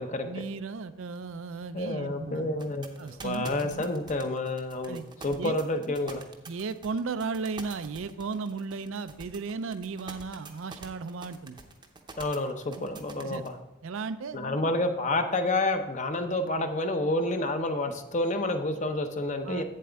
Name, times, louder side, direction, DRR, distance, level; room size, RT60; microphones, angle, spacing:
voice 1, 0.2-2.5 3.0-3.9 4.9-5.0 5.4-5.6 6.5-11.6 12.8-12.9 13.2-13.5 13.8-14.4 19.4-19.6, right 4 dB, 65° right, 12 dB, 0.4 m, -35 dB
voice 2, 1.7-6.2 12.2-13.6 14.3-19.6, left 2 dB, 35° left, 7 dB, 0.7 m, -29 dB
sound 1, 2.6-13.5, right 4 dB, 20° right, 0.7 m, -45 dB
8.6 x 7.6 x 3.4 m, 1.0 s
head